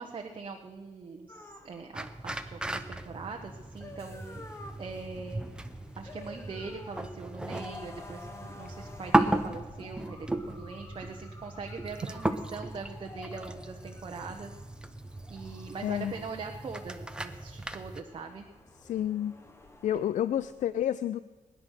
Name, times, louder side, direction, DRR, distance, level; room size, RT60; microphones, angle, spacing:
voice 1, 0.0-4.4 4.8-5.4 6.0-14.5 15.3-18.5, right 4 dB, 40° right, 2 dB, 1.1 m, -42 dB
sound 1, 1.3-20.6, left 2 dB, 20° left, 1.4 m, -51 dB
sound 2, 1.9-18.0, right 1 dB, 5° right, 0.9 m, -35 dB
voice 2, 15.8-16.1 18.8-19.3 19.8-21.2, left 11 dB, 80° left, 15 dB, 0.4 m, -30 dB
20.5 x 10.5 x 6.5 m, 1.3 s
wide cardioid pair, 140°, 13 cm